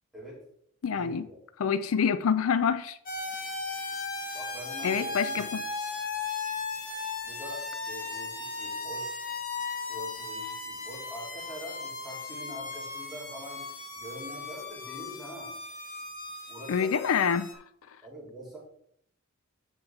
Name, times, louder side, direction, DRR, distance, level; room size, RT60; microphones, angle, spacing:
voice 1, 0.1-0.5 0.9-1.4 4.3-5.5 7.2-9.1 9.9-15.6 16.5-17.0 18.0-18.6, equal, ahead, 3.6 m, -44 dB
voice 2, 0.8-1.3 1.6-3.0 4.8-5.6 16.7-17.6, left 6 dB, 75° left, 0.4 m, -26 dB
sound 1, 3.1-17.5, left 3 dB, 40° left, 1.9 m, -37 dB
12.5 x 4.6 x 3.7 m
head